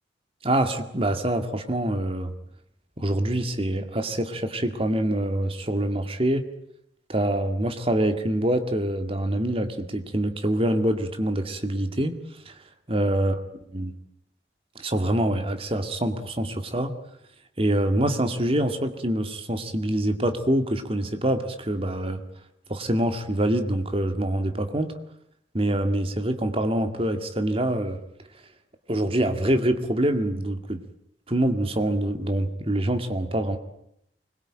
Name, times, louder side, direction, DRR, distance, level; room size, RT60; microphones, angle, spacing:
voice 1, 0.4-2.4 3.0-6.5 7.1-12.2 12.5-13.4 13.7-13.9 14.8-16.9 17.6-22.2 22.7-25.0 25.5-28.0 28.9-30.8 31.3-33.6, right 1 dB, 30° right, 8 dB, 2.1 m, -25 dB
25.0 x 21.5 x 8.9 m, 0.75 s
head